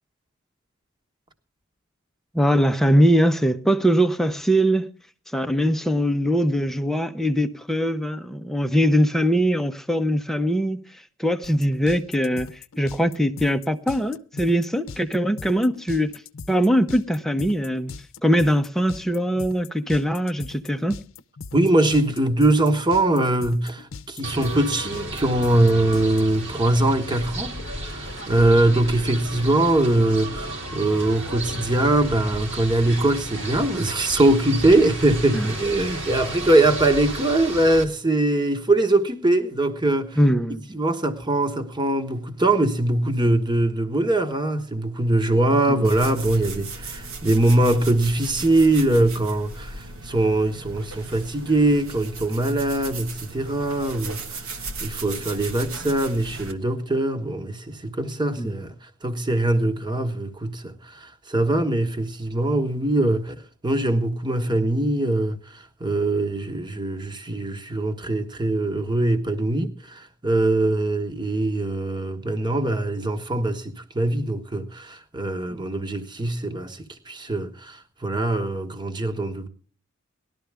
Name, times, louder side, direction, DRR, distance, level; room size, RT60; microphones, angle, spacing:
voice 1, 2.3-4.9 5.3-16.1 16.5-17.9 18.2-21.0 35.3-35.5 40.2-40.6 45.7-45.8 58.4-58.5, equal, ahead, 0.7 m, -21 dB
sound 1, 11.4-26.2, left 4 dB, 70° left, 0.7 m, -39 dB
voice 2, 21.5-40.2 40.7-79.5, right 2 dB, 20° right, 1.3 m, -22 dB
sound 2, 24.2-37.9, right 1 dB, 60° right, 3.0 m, -33 dB
sound 3, 45.8-56.5, right 3 dB, 85° right, 1.6 m, -36 dB
19.0 x 12.5 x 3.5 m
head